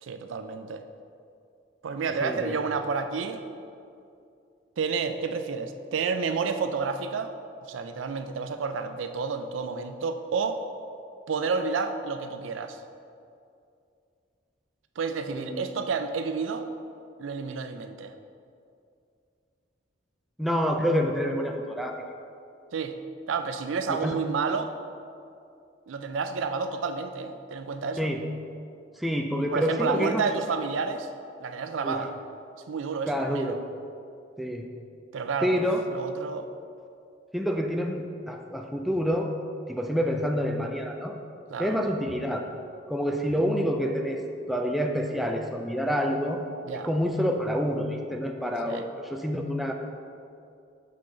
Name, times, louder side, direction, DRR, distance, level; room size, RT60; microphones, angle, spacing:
voice 1, 0.0-0.8 1.8-3.4 4.8-7.3 7.6-10.6 11.3-12.8 15.0-16.7 17.2-18.1 22.7-22.9 23.3-24.7 25.9-28.1 29.5-31.1 31.4-32.1 32.7-33.5 35.1-35.6 35.9-36.5 41.5-41.8 46.7-46.9 48.7-48.9, right 5 dB, 90° right, 8 dB, 0.4 m, -30 dB
voice 2, 2.2-2.5 15.3-15.6 20.4-22.0 23.9-24.2 28.0-28.2 29.0-30.2 31.8-32.0 33.1-33.6 34.4-34.7 35.4-35.8 37.3-39.4 39.7-41.2 41.6-42.5 42.9-44.2 44.5-46.4 46.8-49.7, equal, ahead, 2 dB, 0.3 m, -27 dB
6.3 x 5.7 x 3.8 m, 2.5 s
head